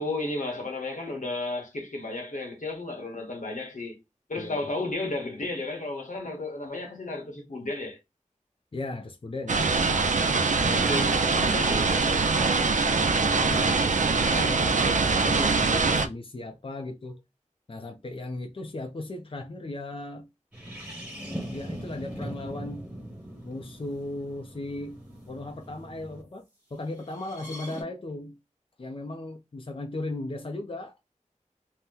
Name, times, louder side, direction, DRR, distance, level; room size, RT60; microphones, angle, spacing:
voice 1, 0.0-4.0 4.3-8.0 10.6-12.3, left 2 dB, 80° left, 1.0 m, -33 dB
voice 2, 4.4-4.7 8.7-10.1 12.6-13.8 14.1-17.2 17.7-20.3 21.5-22.9 23.4-25.0 25.3-26.4 26.7-28.4 28.8-30.9, left 2 dB, 45° left, 0.5 m, -37 dB
sound 1, 9.5-16.1, right 4 dB, 70° right, 0.4 m, -23 dB
sound 2, 20.5-26.2 27.1-27.8, equal, 10° right, 1.3 m, -40 dB
2.8 x 2.1 x 3.6 m
wide cardioid pair, 60°, 13 cm